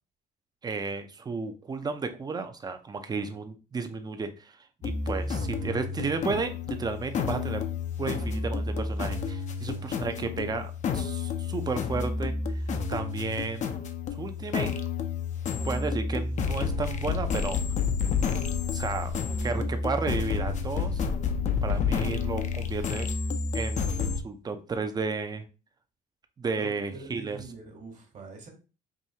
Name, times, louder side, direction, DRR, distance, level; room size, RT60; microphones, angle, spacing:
voice 1, 0.6-4.6 4.8-7.6 8.0-12.6 12.9-13.7 14.1-14.7 15.6-17.6 18.7-19.1 19.4-21.0 21.6-23.1 23.5-25.4 26.4-27.4, right 4 dB, 25° right, 8 dB, 0.6 m, -33 dB
sound 1, 4.8-24.2, left 5 dB, 45° left, 0.5 m, -30 dB
voice 2, 5.2-5.9 9.6-10.4 26.6-28.5, right 4 dB, 45° right, 2 dB, 1.4 m, -46 dB
4.8 x 2.7 x 2.8 m, 0.33 s
cardioid pair, 110°, 17 cm